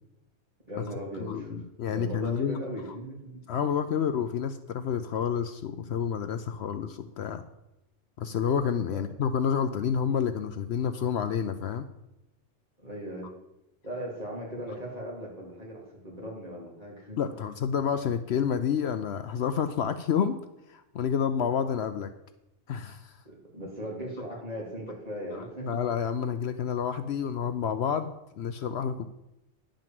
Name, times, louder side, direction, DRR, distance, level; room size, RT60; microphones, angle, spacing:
voice 1, 0.7-1.6 1.9-3.4 8.9-9.0 12.8-13.3 13.8-17.3 23.3-25.8, equal, 30° right, -4 dB, 3.5 m, -38 dB
voice 2, 1.2-2.6 3.5-7.4 8.2-11.9 17.2-20.4 20.7-22.1 22.7-23.1 25.6-29.1, left 7 dB, 65° left, 10 dB, 0.8 m, -29 dB
11.0 x 5.2 x 7.5 m, 0.91 s
omnidirectional pair, 1.2 m